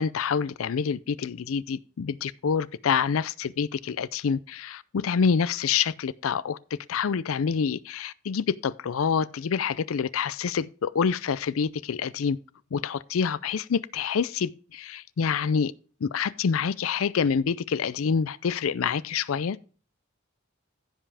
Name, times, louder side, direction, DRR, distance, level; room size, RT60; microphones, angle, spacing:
voice 1, 0.0-6.6 6.9-12.4 12.7-15.7 16.0-19.6, left 6 dB, 90° left, 0.4 m, -27 dB
15.0 x 5.5 x 3.4 m
head